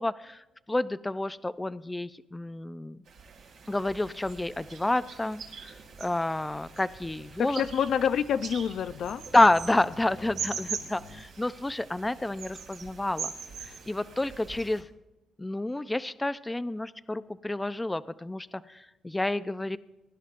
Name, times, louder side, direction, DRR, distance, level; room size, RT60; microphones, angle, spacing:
voice 1, 0.0-3.0 3.7-7.6 9.3-13.3 13.6-14.9 15.4-19.8, left 2 dB, 15° left, 14 dB, 0.4 m, -29 dB
sound 1, 3.1-14.8, right 6 dB, 75° right, 2.4 m, -42 dB
sound 2, 5.9-11.2, left 2 dB, 40° left, 1.2 m, -52 dB
voice 2, 7.4-9.2, left 8 dB, 65° left, 12 dB, 0.5 m, -27 dB
22.5 x 11.0 x 2.5 m, 0.97 s
cardioid pair, 90°, 0 cm